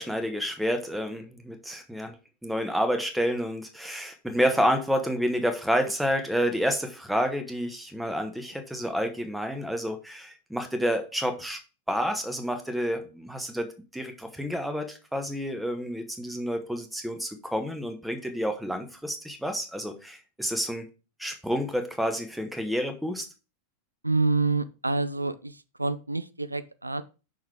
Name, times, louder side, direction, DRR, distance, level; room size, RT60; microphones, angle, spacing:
voice 1, 0.0-2.1 2.4-11.6 11.9-20.9 21.2-23.3, equal, ahead, 7 dB, 1.2 m, -29 dB
voice 2, 24.0-27.0, right 3 dB, 85° right, 13 dB, 0.4 m, -27 dB
6.0 x 4.0 x 4.8 m, 0.31 s
figure-of-eight pair, 90°, 0 cm